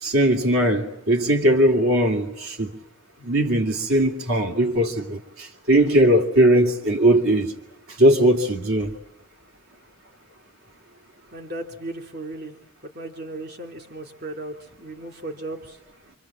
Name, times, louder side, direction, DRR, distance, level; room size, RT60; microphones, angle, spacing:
voice 1, 0.0-2.7 3.2-7.5 8.0-8.9, right 1 dB, 85° right, 2.6 m, -19 dB
voice 2, 11.3-12.5 12.8-15.8, right 2 dB, 50° right, 2.7 m, -36 dB
27.0 x 25.0 x 7.5 m
head